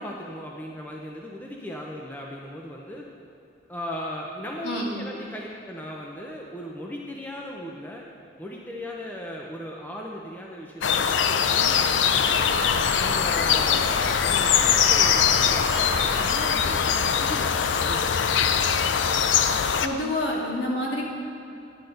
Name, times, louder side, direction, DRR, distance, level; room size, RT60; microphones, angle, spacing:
voice 1, 0.0-3.0 3.7-8.0 8.4-12.5 13.0-13.9 14.2-18.4 20.3-20.4, equal, 10° left, -2 dB, 0.6 m, -37 dB
voice 2, 4.6-5.0 19.8-21.0, left 1 dB, 60° left, -3 dB, 1.9 m, -27 dB
sound 1, 10.8-19.9, left 7 dB, 75° left, 0.4 m, -22 dB
sound 2, 12.3-16.7, equal, 35° left, 1.4 m, -34 dB
11.0 x 8.9 x 3.9 m, 2.9 s
head